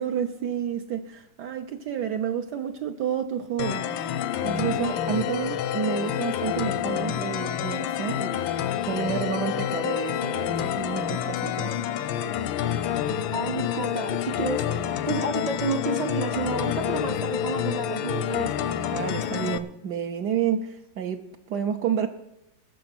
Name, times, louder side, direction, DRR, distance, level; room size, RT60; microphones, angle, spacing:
voice 1, 0.0-4.0 4.4-8.5 8.9-11.7 18.9-22.1, right 8 dB, 70° right, 1.2 m, -30 dB
sound 1, 3.6-19.6, left 10 dB, 85° left, 1.4 m, -28 dB
voice 2, 13.3-18.6, right 2 dB, 40° right, 0.6 m, -30 dB
20.0 x 6.8 x 6.0 m
omnidirectional pair, 2.1 m